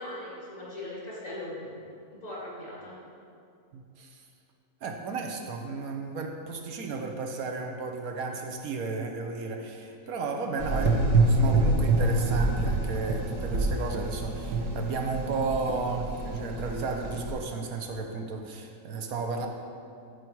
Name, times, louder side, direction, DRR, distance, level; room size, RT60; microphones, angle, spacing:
voice 1, 0.0-1.8 2.2-3.0, left 1 dB, 55° left, -7 dB, 3.1 m, -39 dB
voice 2, 3.7-4.2 4.8-19.5, right 4 dB, 70° right, 3 dB, 1.2 m, -33 dB
Gurgling / Engine, 10.6-17.3, right 2 dB, 90° right, 1.7 m, -26 dB
14.0 x 4.9 x 4.6 m, 2.5 s
omnidirectional pair, 1.6 m